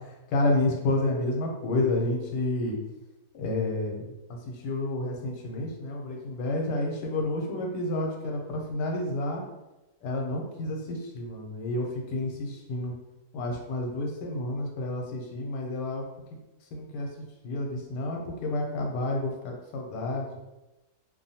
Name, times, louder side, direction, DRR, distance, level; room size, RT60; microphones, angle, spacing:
voice 1, 0.3-2.8 3.3-4.0 4.5-9.4 10.0-12.9 13.3-16.0 16.7-17.1 17.4-20.3, left 2 dB, 80° left, 1 dB, 1.2 m, -30 dB
2.8 x 2.2 x 2.7 m, 1.0 s
omnidirectional pair, 1.8 m